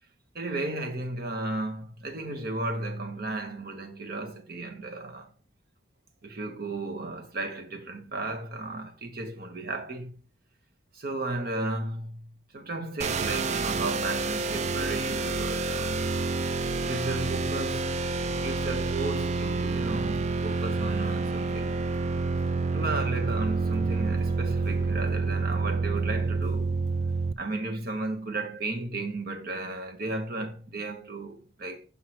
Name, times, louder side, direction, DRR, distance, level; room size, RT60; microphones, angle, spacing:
voice 1, 0.3-5.3 6.2-10.1 10.9-12.3 12.5-16.0 16.8-17.9 18.2-21.8 22.7-26.7 27.4-31.8, right 2 dB, 50° right, 1.2 m, -34 dB
sound 1, 13.0-27.3, right 3 dB, 35° right, 0.3 m, -28 dB
6.0 x 5.6 x 4.4 m
head